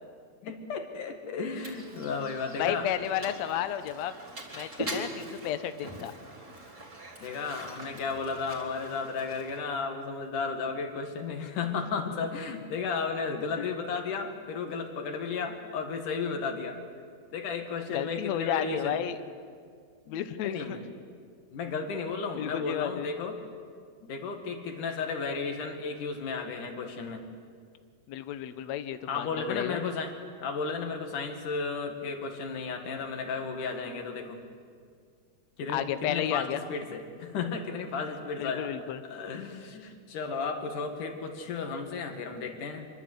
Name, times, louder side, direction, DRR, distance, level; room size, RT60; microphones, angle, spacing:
voice 1, 0.4-2.9 5.0-5.2 7.2-16.8 17.3-19.0 20.1-20.8 21.5-23.4 24.0-27.2 29.1-34.4 35.6-38.7 39.0-42.9, left 5 dB, 60° left, 5 dB, 3.4 m, -34 dB
Mechanisms, 1.5-9.6, right 1 dB, 20° right, 3.4 m, -42 dB
voice 2, 2.6-4.1 4.5-6.1 13.6-13.7 17.9-19.2 20.1-20.8 22.4-23.1 28.1-29.8 35.7-36.6 38.4-39.0, left 10 dB, 85° left, 10 dB, 1.5 m, -32 dB
25.5 x 22.5 x 8.1 m, 2.1 s
omnidirectional pair, 4.5 m